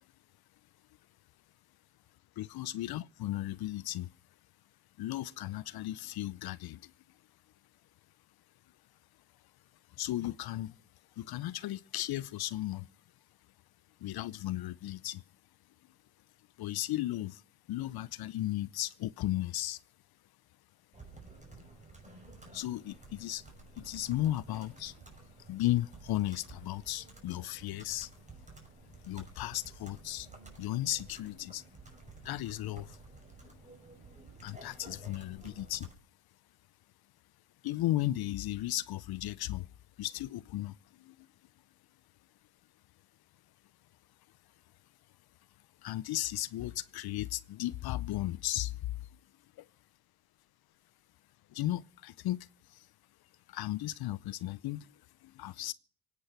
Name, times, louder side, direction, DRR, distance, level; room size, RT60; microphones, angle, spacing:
voice 1, 2.4-4.1 5.0-6.9 9.9-10.8 11.2-12.9 14.0-15.2 16.6-17.4 17.7-19.8 22.5-23.4 23.7-25.0 25.5-28.1 29.0-31.7 32.2-33.0 33.4-33.6 34.4-35.9 37.6-39.7 40.0-41.3 45.8-49.2 49.6-49.7 51.5-52.9 53.5-55.7, left 15 dB, 65° left, 0.7 m, -35 dB
Computer keyboard, 20.9-35.9, right 3 dB, 15° right, 6.0 m, -53 dB
24.0 x 9.6 x 5.8 m
supercardioid pair, 65°, 40 cm